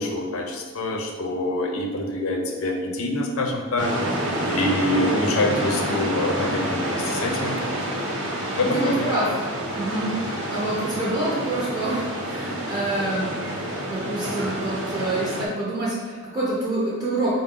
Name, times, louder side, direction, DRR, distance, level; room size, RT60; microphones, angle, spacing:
voice 1, 0.0-3.9 4.5-7.6 8.6-9.1, left 1 dB, 80° left, 2 dB, 0.6 m, -25 dB
sound 1, 3.8-15.5, right 1 dB, 60° right, 0.8 m, -28 dB
voice 2, 8.6-9.3 9.6-13.3 13.8-17.4, right 2 dB, 20° right, -8 dB, 0.7 m, -27 dB
4.8 x 2.1 x 3.6 m, 1.4 s
head